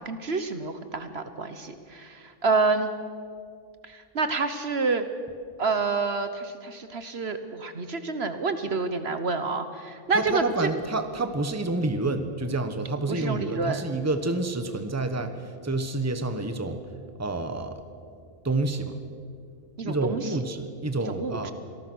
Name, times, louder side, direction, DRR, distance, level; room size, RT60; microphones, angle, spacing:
voice 1, 0.0-2.9 3.8-5.0 5.6-10.7 13.1-13.8 19.8-20.3 21.1-21.5, right 4 dB, 55° right, 9 dB, 1.3 m, -28 dB
voice 2, 10.1-15.3 15.6-16.8 17.2-17.8 18.4-18.9 19.8-21.5, right 2 dB, 15° right, 8 dB, 1.2 m, -28 dB
26.0 x 18.5 x 6.3 m, 2.2 s
omnidirectional pair, 1.3 m